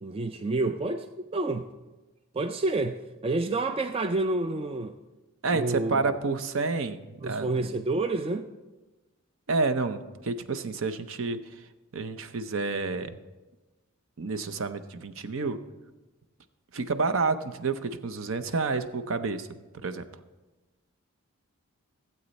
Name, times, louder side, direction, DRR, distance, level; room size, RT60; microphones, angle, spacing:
voice 1, 0.0-1.1 1.3-1.7 2.3-5.0 5.5-6.2 7.2-8.5, right 2 dB, 25° right, 0.3 m, -29 dB
voice 2, 5.4-7.5 9.5-11.4 11.9-13.2 14.2-15.6 16.7-19.5 19.8-20.0, right 4 dB, 60° right, 0.7 m, -29 dB
16.0 x 8.0 x 4.1 m
head